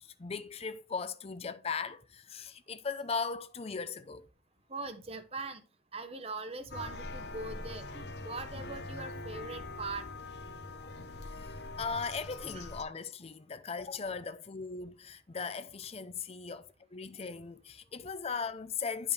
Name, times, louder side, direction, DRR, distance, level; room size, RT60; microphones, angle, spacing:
voice 1, 0.0-4.3 10.8-10.9 11.4-11.5 11.8-19.1, left 5 dB, 35° left, 0.5 m, -38 dB
voice 2, 4.7-5.6 5.9-10.1 12.5-12.6, right 3 dB, 35° right, 1.0 m, -41 dB
sound 1, 6.7-12.8, left 2 dB, 70° left, 1.0 m, -43 dB
10.5 x 5.4 x 3.4 m
head